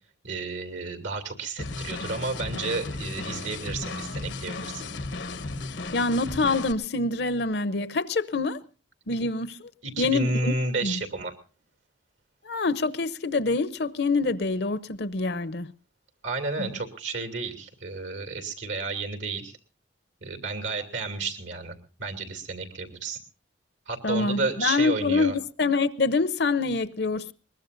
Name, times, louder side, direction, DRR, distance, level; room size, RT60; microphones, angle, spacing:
voice 1, 0.2-4.9 9.8-11.3 16.2-19.6 20.2-23.2 23.9-25.3, right 3 dB, 90° right, 2.7 m, -31 dB
sound 1, 1.6-6.7, left 3 dB, 80° left, 1.0 m, -35 dB
voice 2, 5.9-8.6 9.1-9.7 10.0-10.5 10.8-11.0 12.4-15.7 16.6-16.7 24.0-25.3 25.6-27.3, left 3 dB, 60° left, 0.7 m, -26 dB
22.0 x 20.5 x 2.6 m
head